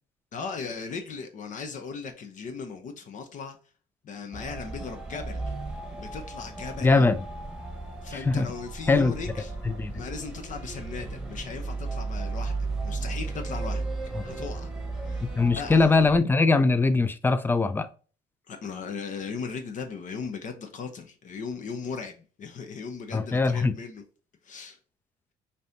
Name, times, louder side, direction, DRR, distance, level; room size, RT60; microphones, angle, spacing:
voice 1, 0.3-3.6 4.0-5.6 5.9-7.1 8.0-9.6 9.9-12.5 12.8-13.8 14.2-14.7 15.0-16.1 18.5-24.0 24.4-24.8, left 5 dB, 50° left, 0.7 m, -37 dB
sound 1, 4.3-16.2, right 3 dB, 5° right, 1.1 m, -35 dB
voice 2, 6.8-7.2 8.1-8.5 8.9-9.1 9.6-10.0 14.2-14.3 15.4-17.9 23.1-23.7, left 3 dB, 10° left, 0.4 m, -22 dB
5.3 x 2.8 x 2.6 m
cardioid pair, 110°, 17 cm